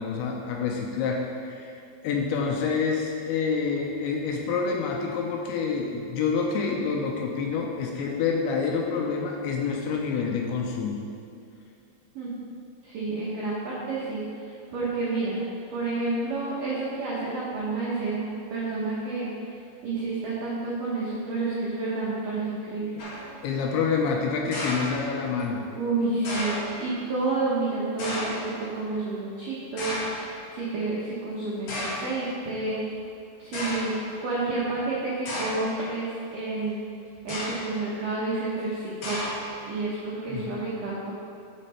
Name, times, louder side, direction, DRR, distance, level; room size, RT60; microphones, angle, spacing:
voice 1, 0.0-11.0 23.4-25.6 40.3-40.6, left 5 dB, 80° left, 1 dB, 2.7 m, -27 dB
voice 2, 12.8-15.4 15.7-22.9 25.8-33.0 33.4-33.9 34.2-36.8 37.2-39.2 39.7-41.1, right 3 dB, 80° right, -7 dB, 1.9 m, -30 dB
sound 1, 23.0-23.4 24.5-25.4 26.2-26.8 28.0-28.6 29.8-30.3 31.1-31.2 31.7-32.2 33.0-33.1 33.5-34.0 35.3-35.8 37.2-37.8 39.0-39.6, equal, 55° left, 2.3 m, -33 dB
8.4 x 7.5 x 4.3 m, 2.5 s
omnidirectional pair, 5.7 m